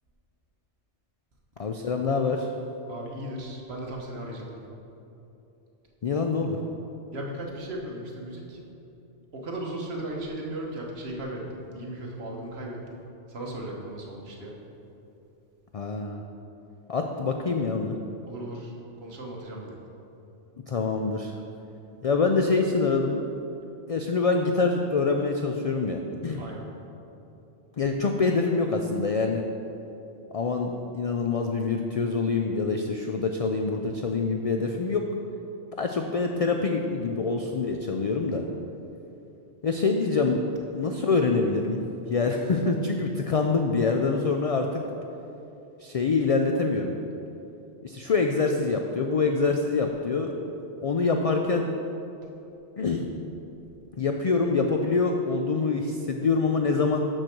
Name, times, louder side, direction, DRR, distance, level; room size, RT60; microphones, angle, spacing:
voice 1, 1.6-2.5 6.0-6.6 15.7-16.2 16.9-18.0 20.7-21.4 22.0-23.2 23.9-26.4 27.8-29.4 30.3-35.0 35.7-38.5 39.6-40.4 40.7-41.8 42.1-44.8 45.8-47.0 47.8-50.3 50.8-51.7 52.8-53.1 54.0-57.0, left 4 dB, 75° left, 3 dB, 0.3 m, -25 dB
voice 2, 2.9-4.7 7.1-8.6 9.3-13.0 13.3-14.5 18.3-19.7 26.4-26.7, right 1 dB, 65° right, -1 dB, 1.4 m, -36 dB
6.5 x 6.4 x 5.9 m, 2.9 s
omnidirectional pair, 1.2 m